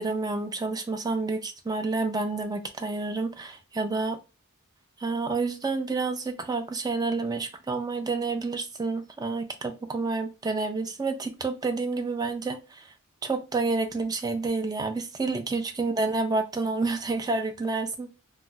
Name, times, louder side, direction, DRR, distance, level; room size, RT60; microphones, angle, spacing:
voice 1, 0.0-4.2 5.0-12.8 13.2-18.1, right 3 dB, 20° right, 0.4 m, -29 dB
2.2 x 2.1 x 3.8 m
head